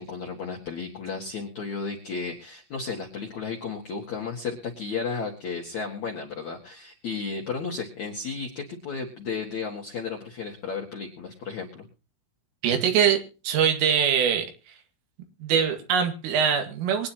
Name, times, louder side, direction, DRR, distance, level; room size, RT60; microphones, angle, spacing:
voice 1, 0.0-11.9, left 5 dB, 60° left, -1 dB, 2.0 m, -33 dB
voice 2, 12.6-13.2 13.4-14.5 15.4-17.1, right 7 dB, 75° right, 5 dB, 4.5 m, -22 dB
23.5 x 9.7 x 2.9 m, 0.32 s
omnidirectional pair, 5.9 m